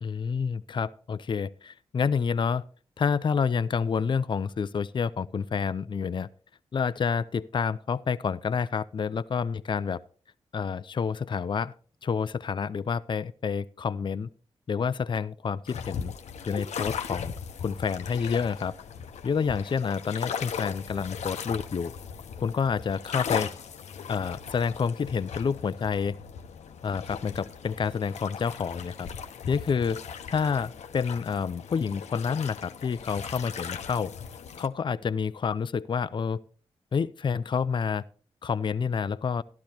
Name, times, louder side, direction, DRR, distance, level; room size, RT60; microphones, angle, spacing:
voice 1, 0.0-2.6 3.0-6.3 6.7-10.0 10.5-11.7 12.0-14.3 14.7-16.1 16.4-17.3 17.6-18.7 19.2-21.9 22.4-23.5 24.1-26.2 26.8-29.1 29.5-30.0 30.3-34.1 34.6-36.4 36.9-38.0 38.4-39.4, left 6 dB, 45° left, 15 dB, 0.4 m, -28 dB
sound 1, 15.7-34.7, left 7 dB, 80° left, 0.8 m, -38 dB
12.0 x 12.0 x 2.8 m, 0.41 s
cardioid pair, 50°, 12 cm